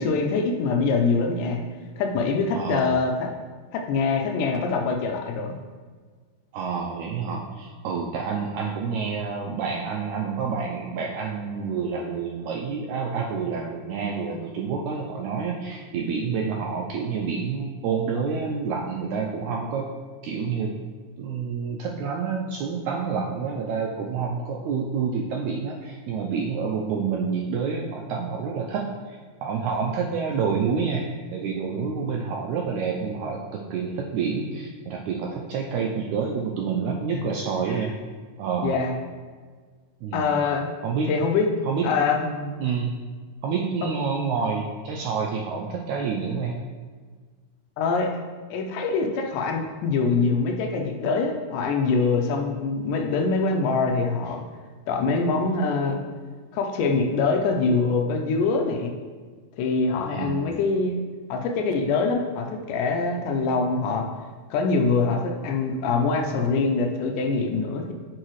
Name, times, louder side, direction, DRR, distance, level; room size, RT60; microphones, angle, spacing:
voice 1, 0.0-1.6 2.0-3.3 3.7-5.5 37.1-37.2 38.6-38.9 40.1-40.7 41.1-41.5 41.8-42.4 47.8-48.1 48.5-54.4 54.9-56.0 56.5-58.9 59.6-61.0 61.3-64.1 64.5-67.9, left 4 dB, 80° left, 3 dB, 2.2 m, -24 dB
voice 2, 2.5-3.0 6.5-19.9 20.2-20.8 21.2-37.9 38.4-38.8 40.0-40.3 40.8-41.1 41.6-42.9 43.4-46.6 60.1-60.5, right 5 dB, 85° right, 0 dB, 1.7 m, -28 dB
8.9 x 4.8 x 3.1 m, 1.5 s
omnidirectional pair, 3.8 m